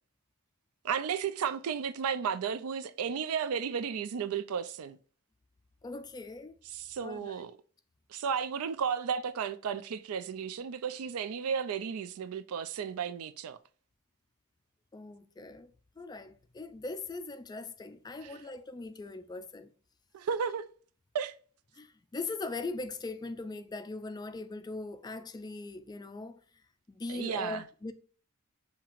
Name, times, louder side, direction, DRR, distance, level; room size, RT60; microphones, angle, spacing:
voice 1, 0.8-5.0 6.7-7.5 8.1-13.6 18.2-18.4 20.1-20.7 21.1-21.3 27.1-27.6, right 7 dB, 85° right, 0.4 m, -33 dB
voice 2, 5.8-6.6 7.0-7.4 14.9-19.7 21.7-26.4 26.9-27.9, left 3 dB, 20° left, 0.3 m, -40 dB
7.2 x 2.8 x 2.4 m
head